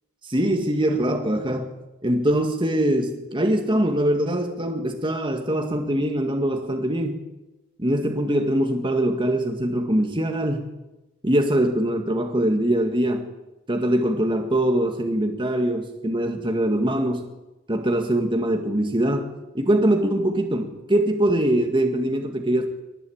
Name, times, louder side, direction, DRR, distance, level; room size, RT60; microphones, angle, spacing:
voice 1, 0.2-1.7 2.0-7.2 7.8-10.7 11.2-13.3 13.7-17.3 17.7-22.8, right 1 dB, 25° right, 4 dB, 1.9 m, -23 dB
24.0 x 19.0 x 8.8 m, 1.0 s
head